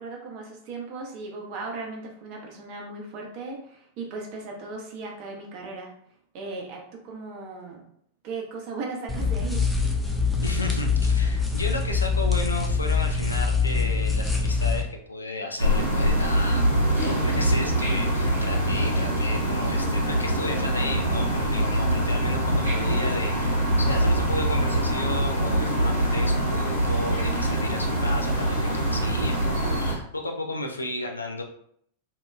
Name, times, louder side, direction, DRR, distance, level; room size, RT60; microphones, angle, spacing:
voice 1, 0.0-5.9 6.3-7.8 8.2-9.6, right 3 dB, 45° right, 0 dB, 0.6 m, -37 dB
sound 1, 9.1-14.8, left 4 dB, 5° left, 0.4 m, -24 dB
voice 2, 10.4-16.8 17.0-31.4, left 2 dB, 80° left, 3 dB, 0.4 m, -33 dB
The Great Outdoors of Kortepohja, 15.6-29.9, right 1 dB, 90° right, 0.8 m, -24 dB
2.7 x 2.2 x 2.2 m, 0.66 s
figure-of-eight pair, 90°, 0 cm